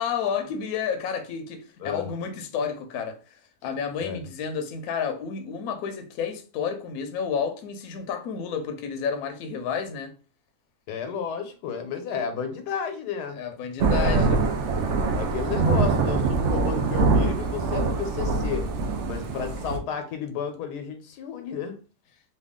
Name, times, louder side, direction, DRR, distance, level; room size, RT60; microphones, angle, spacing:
voice 1, 0.0-3.2 3.6-10.1 13.3-14.4, left 6 dB, 70° left, 1.0 m, -30 dB
voice 2, 10.9-13.4 13.9-14.4 15.1-18.7 19.1-21.8, left 7 dB, 90° left, 1.3 m, -32 dB
Thunder / Rain, 13.8-19.8, right 3 dB, 65° right, 0.7 m, -24 dB
3.2 x 2.3 x 3.5 m
omnidirectional pair, 1.7 m